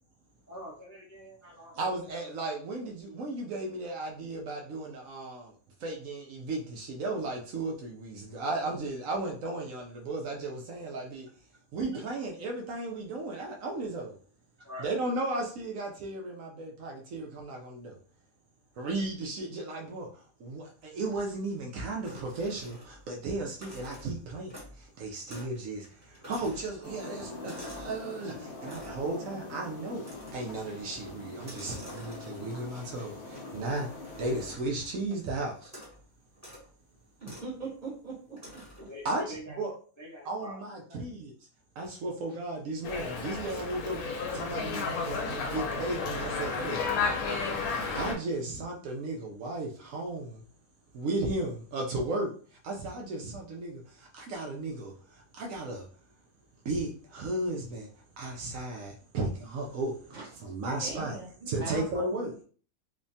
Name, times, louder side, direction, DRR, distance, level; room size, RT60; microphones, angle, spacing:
voice 1, 0.5-2.3 14.6-14.9 38.8-39.6 40.0-41.0, left 1 dB, 15° left, 0.6 m, -45 dB
voice 2, 1.8-5.5 5.8-11.3 11.7-14.2 14.8-18.0 18.8-30.0 30.3-35.7 39.0-39.7 40.3-41.3 41.8-46.8 47.9-50.4 50.9-52.3 52.6-55.9 56.6-57.9 58.2-61.2 61.5-62.3, right 2 dB, 70° right, 0.9 m, -35 dB
sound 1, 22.0-23.1 23.5-24.9 25.3-25.6 25.8-28.0 28.6-29.1 30.0-30.6 31.3-32.6 33.3-35.1 35.6-36.0 36.3-36.7 37.2-37.5 38.4-38.9, equal, 15° right, 0.9 m, -49 dB
sound 2, 26.8-34.6, left 3 dB, 65° left, 0.8 m, -43 dB
voice 3, 37.2-38.9 42.3-42.4 60.1-62.2, right 3 dB, 35° right, 1.1 m, -42 dB
Dog, 42.8-48.1, left 4 dB, 85° left, 1.1 m, -32 dB
3.2 x 2.1 x 2.6 m
omnidirectional pair, 1.5 m